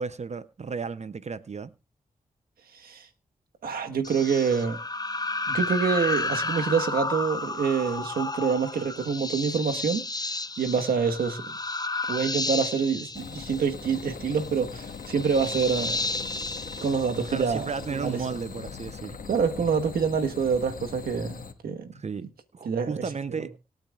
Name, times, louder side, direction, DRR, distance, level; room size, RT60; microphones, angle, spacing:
voice 1, 0.0-1.7 17.3-19.2 21.9-22.3 22.5-23.6, right 5 dB, 50° right, 0.7 m, -33 dB
voice 2, 2.7-3.1 3.6-4.8 5.5-11.5 12.1-16.0 16.8-18.2 19.3-22.0 22.6-23.0 23.4-23.5, right 6 dB, 85° right, 1.5 m, -26 dB
sound 1, 4.0-17.9, left 3 dB, 25° left, 1.0 m, -32 dB
sound 2, 13.1-21.5, left 5 dB, 70° left, 1.7 m, -40 dB
24.5 x 9.0 x 2.5 m
supercardioid pair, 40°, 15 cm